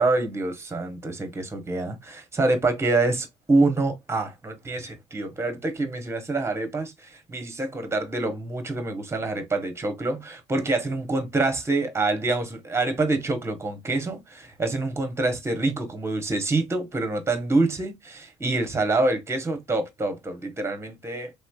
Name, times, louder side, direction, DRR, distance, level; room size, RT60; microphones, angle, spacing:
voice 1, 0.0-21.3, right 2 dB, 15° right, 0.9 m, -26 dB
3.2 x 3.1 x 2.2 m
cardioid pair, 110°, 17 cm